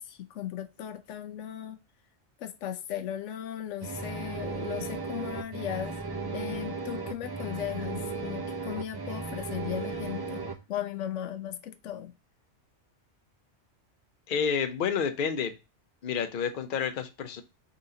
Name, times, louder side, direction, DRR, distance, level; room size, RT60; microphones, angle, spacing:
voice 1, 0.0-1.8 2.4-6.0 6.3-12.1, left 11 dB, 85° left, 0.9 m, -37 dB
sound 1, 3.8-10.5, right 4 dB, 30° right, 0.5 m, -35 dB
voice 2, 14.3-15.6 16.0-17.4, left 7 dB, 50° left, 0.8 m, -29 dB
4.0 x 3.8 x 2.7 m
omnidirectional pair, 1.2 m